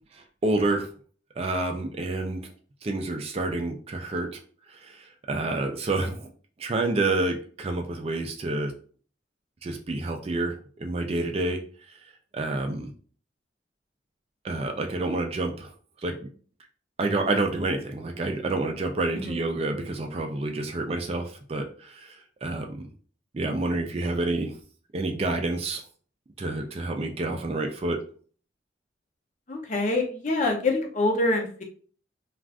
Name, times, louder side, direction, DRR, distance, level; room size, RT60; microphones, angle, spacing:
voice 1, 0.1-0.9 1.4-2.5 2.8-4.4 4.7-6.3 6.6-8.7 9.6-11.6 12.3-12.9 14.4-15.7 16.0-16.3 17.0-22.9 23.3-24.5 24.9-25.8 26.4-28.0, right 2 dB, 35° right, 4 dB, 0.4 m, -28 dB
voice 2, 19.1-19.5 29.5-31.6, left 2 dB, 40° left, 1 dB, 0.6 m, -26 dB
2.4 x 2.4 x 3.4 m, 0.43 s
head